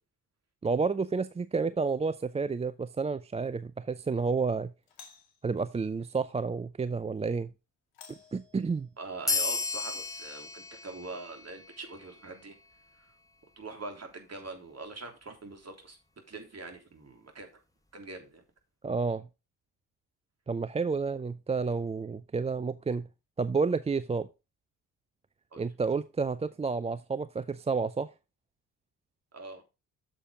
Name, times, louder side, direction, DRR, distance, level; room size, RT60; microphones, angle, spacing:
voice 1, 0.6-4.7 5.4-7.5 8.3-8.9 18.8-19.3 20.5-23.1 23.4-24.3 25.6-28.1, right 4 dB, 15° right, 0.5 m, -30 dB
Doorbell, 1.8-2.3 4.8-5.5 7.9-9.1, left 6 dB, 65° left, 2.2 m, -55 dB
voice 2, 9.0-12.6 13.0-13.1 13.6-16.0 16.3-17.5 17.9-18.4 25.5-25.7 29.3-29.6, right 3 dB, 30° right, 3.5 m, -43 dB
sound 1, 9.3-12.3, left 3 dB, 5° left, 1.8 m, -34 dB
8.9 x 6.9 x 3.7 m
hypercardioid pair, 45°, 48 cm